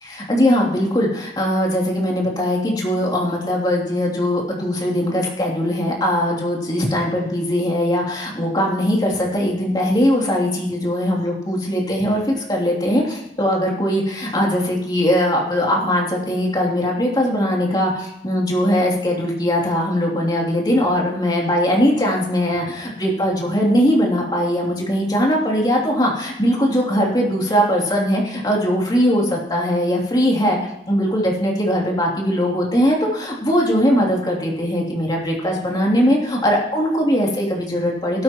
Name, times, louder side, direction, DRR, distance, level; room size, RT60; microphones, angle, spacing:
voice 1, 0.0-30.6 30.9-38.2, equal, 25° left, -2 dB, 3.0 m, -20 dB
16.5 x 13.0 x 3.1 m, 0.85 s
head